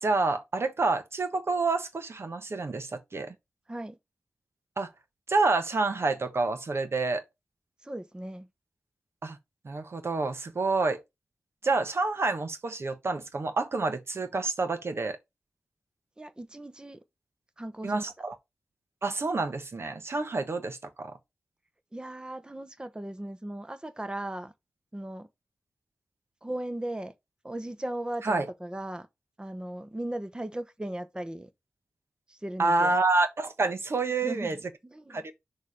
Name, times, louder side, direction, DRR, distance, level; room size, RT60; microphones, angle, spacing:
voice 1, 0.0-3.3 4.8-4.9 5.3-7.2 9.2-9.4 9.6-11.0 11.6-15.2 17.8-18.3 19.0-21.2 28.2-28.5 32.6-34.6 35.1-35.3, right 3 dB, 55° right, 1.3 m, -28 dB
voice 2, 7.8-8.5 16.2-17.0 17.6-18.0 21.9-24.5 24.9-25.3 26.4-27.1 27.4-29.1 29.4-31.5 32.3-32.9 34.2-35.2, right 1 dB, 15° right, 0.9 m, -37 dB
6.6 x 3.3 x 4.8 m
cardioid pair, 65°, 5 cm